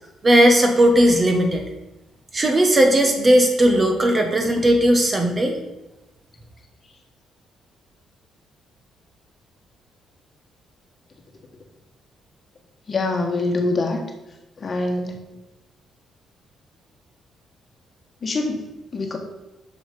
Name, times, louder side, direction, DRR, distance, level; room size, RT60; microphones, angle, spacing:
voice 1, 0.2-1.6 2.3-5.6, right 1 dB, 30° right, 4 dB, 1.4 m, -17 dB
voice 2, 12.9-14.0 14.6-15.2 18.2-19.2, left 2 dB, 40° left, 3 dB, 1.4 m, -24 dB
6.4 x 6.1 x 5.3 m, 1.0 s
cardioid pair, 90°, 0 cm